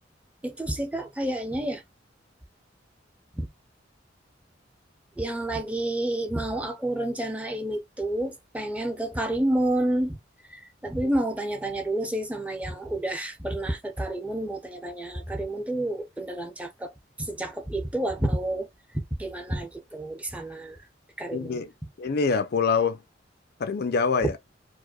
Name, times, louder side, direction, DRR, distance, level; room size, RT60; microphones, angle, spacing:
voice 1, 0.4-1.8 3.4-3.5 5.2-10.2 10.5-16.9 17.2-18.7 18.9-20.8 21.2-21.6 24.2-24.3, right 1 dB, 5° right, 0.6 m, -29 dB
voice 2, 21.3-21.7 22.0-23.0 23.6-24.3, left 5 dB, 60° left, 0.5 m, -25 dB
4.7 x 2.1 x 2.3 m
head